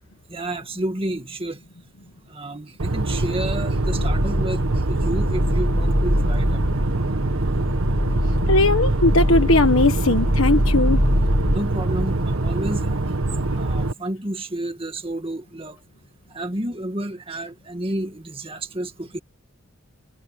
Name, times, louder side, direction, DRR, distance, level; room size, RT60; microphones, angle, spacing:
voice 1, 0.3-1.6 2.3-6.7 11.5-13.0 13.5-15.8 16.3-19.2, right 1 dB, 25° right, 2.0 m, -30 dB
sound 1, 2.8-13.9, right 2 dB, 85° right, 1.5 m, -24 dB
sound 2, 3.8-11.6, equal, 30° left, 2.0 m, -23 dB
voice 2, 8.5-11.0, left 2 dB, 80° left, 1.5 m, -18 dB
head